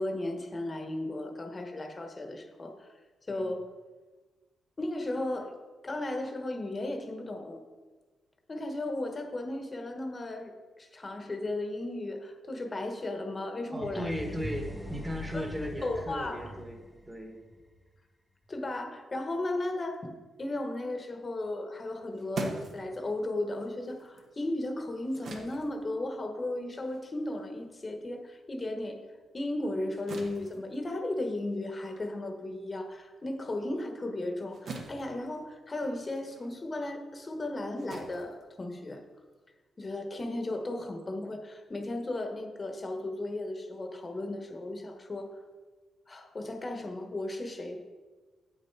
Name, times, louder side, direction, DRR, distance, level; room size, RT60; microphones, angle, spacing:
voice 1, 0.0-2.9 3.3-3.7 4.8-5.6 5.8-7.6 8.5-14.1 15.3-15.4 15.8-16.5 18.5-29.0 29.3-39.0 39.8-45.3 46.1-47.8, left 1 dB, 30° left, 5 dB, 1.1 m, -35 dB
voice 2, 13.7-17.4, equal, 15° right, 3 dB, 1.4 m, -37 dB
sound 1, 13.8-17.7, left 1 dB, 5° left, 0.7 m, -42 dB
sound 2, 21.8-28.6 29.0-39.2, right 3 dB, 65° right, 1.2 m, -46 dB
8.1 x 6.3 x 4.6 m, 1.3 s
cardioid pair, 105°, 0 cm